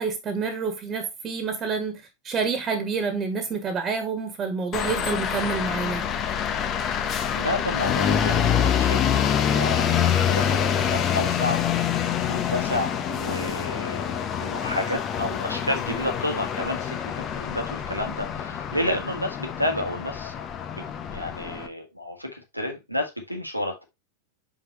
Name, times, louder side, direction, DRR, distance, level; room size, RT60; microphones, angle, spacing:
voice 1, 0.0-6.0, right 5 dB, 25° right, 1.9 m, -28 dB
sound 1, 4.7-21.7, left 8 dB, 30° left, 1.0 m, -26 dB
voice 2, 7.4-11.8 12.3-20.3 21.1-23.8, left 1 dB, 90° right, 1.7 m, -31 dB
6.3 x 5.5 x 3.1 m
figure-of-eight pair, 90°, 0 cm